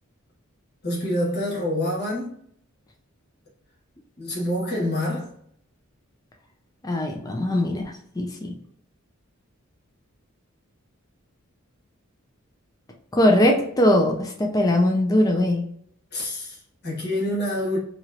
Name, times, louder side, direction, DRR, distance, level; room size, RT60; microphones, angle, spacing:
voice 1, 0.8-2.3 4.2-5.3 16.1-17.8, left 1 dB, 50° left, 1.4 m, -27 dB
voice 2, 6.8-8.5 13.1-15.6, left 1 dB, 15° left, 0.5 m, -21 dB
2.9 x 2.9 x 2.5 m
head